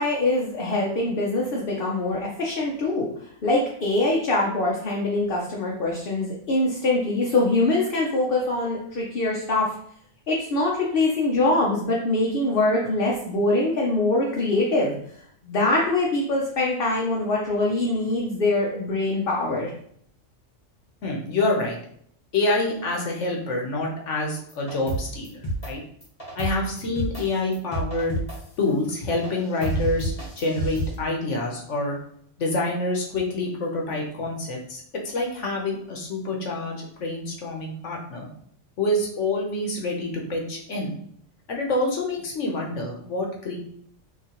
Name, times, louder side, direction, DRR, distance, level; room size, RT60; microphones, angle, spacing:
voice 1, 0.0-3.1 3.4-9.7 10.3-15.0 15.4-19.7, left 2 dB, 50° left, -3 dB, 0.9 m, -23 dB
voice 2, 21.0-21.8 22.3-25.8 26.4-28.2 28.6-32.0 32.4-38.3 38.8-40.9 41.5-43.6, left 2 dB, 70° left, 0 dB, 1.3 m, -27 dB
sound 1, 24.5-25.7 26.0-27.2 27.5-28.4 29.2-29.3 29.6-30.9, right 1 dB, 30° left, 1.3 m, -29 dB
5.8 x 2.9 x 3.0 m, 0.66 s
omnidirectional pair, 1.3 m